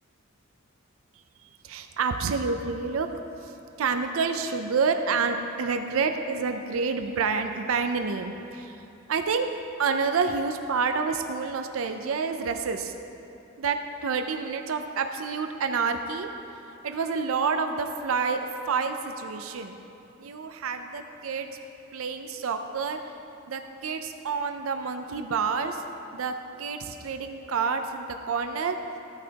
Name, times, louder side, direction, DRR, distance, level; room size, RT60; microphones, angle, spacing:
voice 1, 1.4-3.1 3.4-3.5 3.8-8.8 9.1-9.5 9.8-12.9 13.6-16.3 16.8-19.8 20.2-21.5 21.9-23.0 23.5-25.8 26.1-26.3 26.6-28.8, right 5 dB, 85° right, 7 dB, 0.5 m, -28 dB
15.0 x 8.7 x 2.9 m, 2.9 s
head